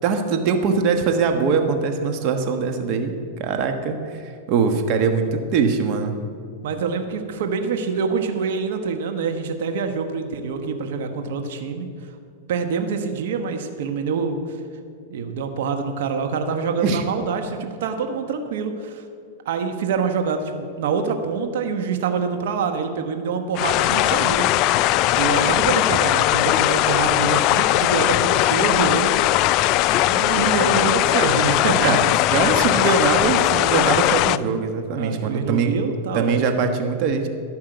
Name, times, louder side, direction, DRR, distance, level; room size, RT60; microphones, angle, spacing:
voice 1, 0.0-6.1 16.8-17.0 31.7-32.0 32.3-35.8 36.1-37.3, right 5 dB, 50° right, 5 dB, 1.3 m, -22 dB
voice 2, 6.6-11.9 12.5-14.6 15.1-19.1 19.4-24.5 25.2-29.2 30.1-31.9 35.0-36.4, right 5 dB, 70° right, 6 dB, 1.2 m, -25 dB
sound 1, 23.5-34.4, left 15 dB, 45° left, 0.3 m, -19 dB
17.0 x 5.6 x 7.9 m, 2.3 s
hypercardioid pair, 125°, 0 cm